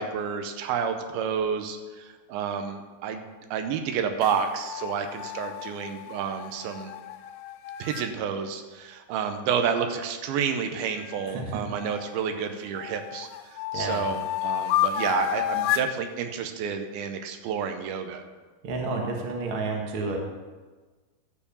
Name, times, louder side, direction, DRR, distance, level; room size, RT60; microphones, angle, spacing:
voice 1, 0.0-3.2 3.5-6.9 7.8-18.2, right 7 dB, 80° right, 6 dB, 2.5 m, -30 dB
sound 1, 4.2-8.1 11.0-12.3 12.8-16.0, left 12 dB, 80° left, 2.2 m, -31 dB
voice 2, 11.3-11.6 13.7-14.0 18.6-20.2, right 3 dB, 60° right, 1 dB, 1.4 m, -30 dB
12.5 x 4.7 x 6.9 m, 1.3 s
omnidirectional pair, 4.4 m